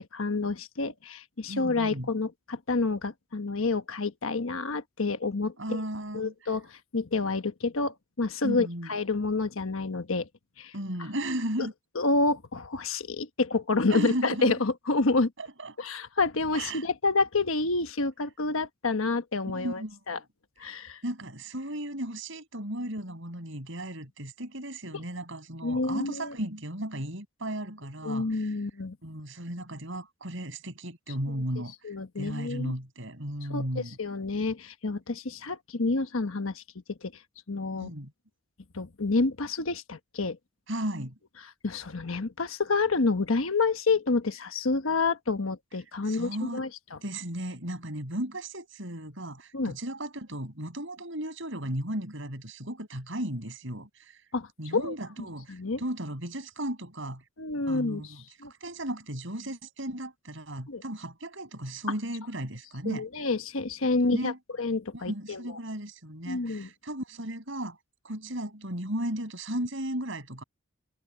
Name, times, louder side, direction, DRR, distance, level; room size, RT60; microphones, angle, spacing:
voice 1, 0.0-5.8 6.1-6.7 6.9-10.3 10.6-10.7 11.6-11.7 11.9-15.3 15.8-19.8 20.1-20.2 20.6-21.0 25.6-26.3 28.0-29.0 31.8-32.7 33.5-36.6 36.9-37.1 37.5-37.9 38.7-40.4 41.6-47.0 49.5-49.8 54.3-54.9 55.5-55.8 57.4-58.1 58.4-58.5 60.7-60.8 62.8-64.3 64.6-65.6 66.3-66.7, left 3 dB, 80° left, 1.2 m, -28 dB
voice 2, 1.5-2.1 5.6-6.3 8.4-8.9 10.7-11.7 13.9-14.6 15.4-15.7 16.5-16.8 19.5-20.0 21.0-28.5 29.0-31.7 32.2-34.0 37.7-38.1 40.7-41.1 46.0-46.6 47.0-54.2 54.6-57.2 57.7-63.1 64.1-64.4 64.9-67.8 68.0-70.4, right 1 dB, 65° right, 6.9 m, -35 dB
head